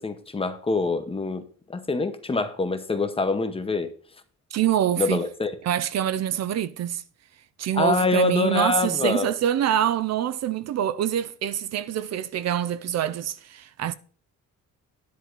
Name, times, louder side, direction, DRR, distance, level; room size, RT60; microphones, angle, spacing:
voice 1, 0.0-1.4 1.7-3.9 5.0-5.5 7.7-9.3, left 3 dB, 20° left, 0.9 m, -25 dB
voice 2, 4.5-5.2 5.6-7.0 7.6-13.9, right 10 dB, 55° right, 0.5 m, -25 dB
10.5 x 4.5 x 6.6 m
cardioid pair, 150°, 31 cm